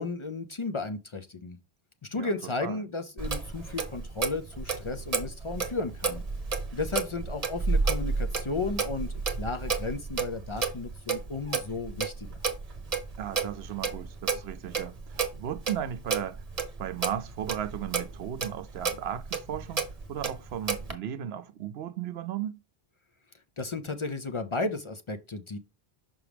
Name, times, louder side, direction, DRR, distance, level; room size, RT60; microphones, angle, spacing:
voice 1, 0.0-1.6 2.0-6.2 6.7-12.4 23.6-25.6, left 3 dB, 40° left, 0.4 m, -34 dB
Clock, 3.2-20.9, right 4 dB, 40° right, 1.0 m, -32 dB
voice 2, 13.2-16.4 16.8-22.6, right 10 dB, 80° right, 0.9 m, -36 dB
6.0 x 5.3 x 3.3 m
omnidirectional pair, 1.0 m